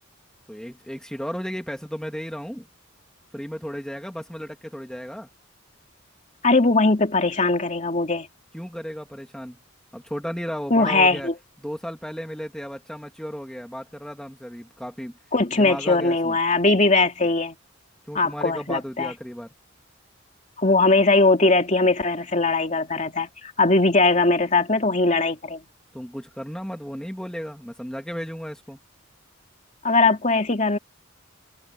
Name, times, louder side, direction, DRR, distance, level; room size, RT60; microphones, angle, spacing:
voice 1, 0.5-2.7 3.3-5.3 8.5-9.6 9.9-11.3 11.6-15.1 15.5-16.4 18.1-19.5 25.9-28.8, equal, 5° left, 2.1 m, -34 dB
voice 2, 6.4-8.3 10.7-11.3 15.3-17.6 18.1-19.1 20.6-25.6 29.8-30.8, left 3 dB, 35° left, 2.8 m, -20 dB
head